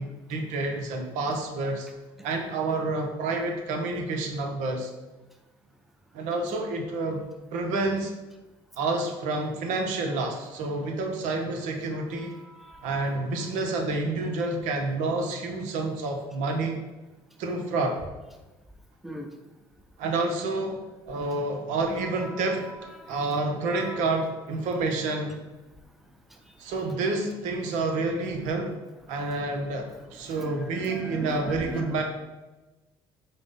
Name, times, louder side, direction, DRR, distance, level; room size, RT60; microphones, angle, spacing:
voice 1, 0.0-1.9 2.2-4.9 6.1-8.1 8.8-12.3 12.8-16.8 17.4-18.0 20.0-22.7 23.1-25.4 26.6-28.8 29.1-32.0, right 3 dB, 75° right, 4 dB, 0.6 m, -29 dB
voice 2, 12.2-13.2 19.0-19.3 21.9-23.3 23.7-24.1 29.6-32.0, equal, ahead, 3 dB, 0.5 m, -42 dB
5.0 x 2.0 x 3.7 m, 1.1 s
supercardioid pair, 65°, 13 cm